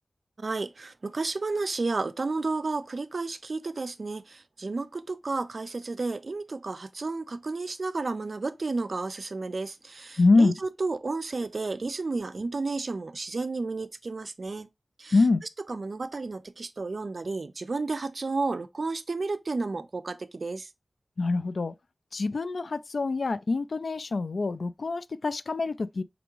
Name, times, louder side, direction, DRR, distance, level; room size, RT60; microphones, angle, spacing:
voice 1, 0.4-14.7 15.0-15.2 15.7-20.7, right 3 dB, 65° right, 0.4 m, -32 dB
voice 2, 10.2-10.5 15.1-15.4 21.2-21.7 22.1-26.0, left 3 dB, 80° left, 0.3 m, -25 dB
5.0 x 3.5 x 3.0 m
wide cardioid pair, 80°, 0 cm